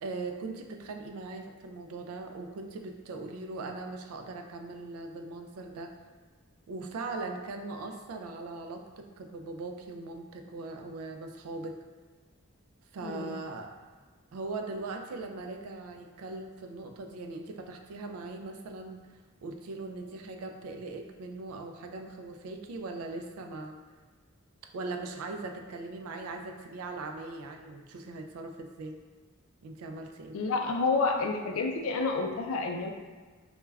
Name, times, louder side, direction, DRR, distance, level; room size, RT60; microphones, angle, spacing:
voice 1, 0.0-5.9 6.7-11.8 12.9-13.7 14.3-19.0 19.4-23.8 24.7-29.0 29.6-30.4, right 3 dB, 85° right, 4 dB, 0.3 m, -40 dB
voice 2, 13.0-13.4 30.3-32.9, left 3 dB, 70° left, 2 dB, 0.4 m, -29 dB
2.2 x 2.2 x 3.2 m, 1.4 s
head